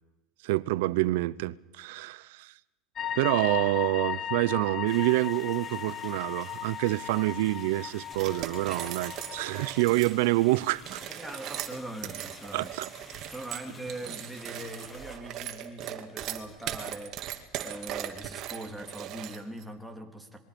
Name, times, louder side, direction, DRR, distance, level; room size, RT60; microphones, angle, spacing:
voice 1, 0.4-2.5 3.2-11.0 12.5-12.9, right 19 dB, 80° right, 0.7 m, -27 dB
sound 1, 3.0-9.8, left 9 dB, 35° left, 1.2 m, -37 dB
sound 2, 4.9-15.2, left 2 dB, 20° left, 2.9 m, -51 dB
sound 3, 8.1-10.2 10.8-19.6, right 11 dB, 50° right, 2.3 m, -39 dB
voice 2, 11.2-12.7 13.3-17.3 17.6-20.4, right 1 dB, ahead, 3.2 m, -41 dB
26.5 x 22.0 x 5.3 m
supercardioid pair, 110°, 0 cm